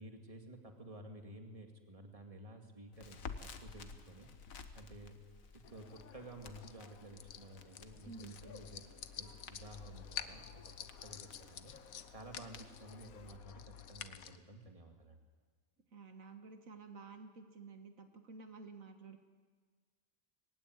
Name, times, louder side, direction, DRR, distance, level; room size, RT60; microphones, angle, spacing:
voice 1, 0.0-4.3 4.7-5.2 5.5-8.9 9.2-15.2, right 1 dB, 25° right, 4 dB, 2.2 m, -53 dB
Crackle, 2.9-13.4, left 5 dB, 70° left, 1.7 m, -54 dB
sound 1, 5.6-14.4, left 8 dB, 90° left, 1.4 m, -50 dB
voice 2, 15.9-19.2, right 4 dB, 70° right, 6 dB, 1.8 m, -52 dB
21.5 x 16.0 x 9.7 m, 1.5 s
omnidirectional pair, 1.5 m